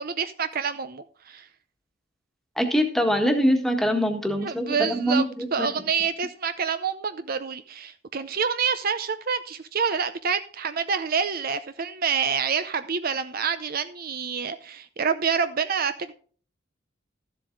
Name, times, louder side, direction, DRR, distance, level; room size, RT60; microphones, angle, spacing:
voice 1, 0.0-1.5 4.4-5.2 5.5-16.1, right 6 dB, 50° right, 0.6 m, -27 dB
voice 2, 2.6-5.8, equal, ahead, 1.6 m, -24 dB
13.0 x 7.8 x 3.9 m
head